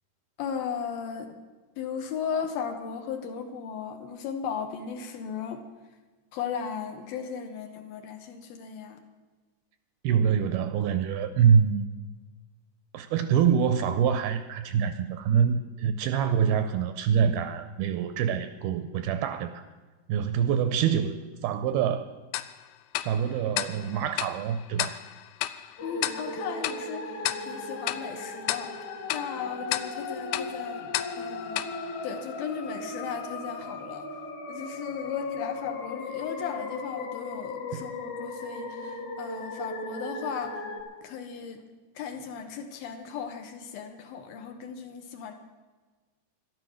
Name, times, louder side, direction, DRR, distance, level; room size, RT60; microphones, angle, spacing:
voice 1, 0.4-1.4 1.8-5.6 6.3-9.0 25.8-28.7 29.1-31.7 32.0-34.1 34.5-40.6 41.0-41.6 42.0-45.3, left 7 dB, 70° left, 5 dB, 2.6 m, -36 dB
voice 2, 10.0-11.9 12.9-19.5 20.1-22.1 23.0-25.0 37.7-37.8, right 7 dB, 85° right, 10 dB, 2.3 m, -25 dB
Tick-tock, 22.3-32.8, left 14 dB, 90° left, 2.8 m, -35 dB
sound 1, 25.8-40.8, left 3 dB, 55° left, 2.6 m, -37 dB
12.5 x 12.0 x 6.4 m, 1.3 s
omnidirectional pair, 4.8 m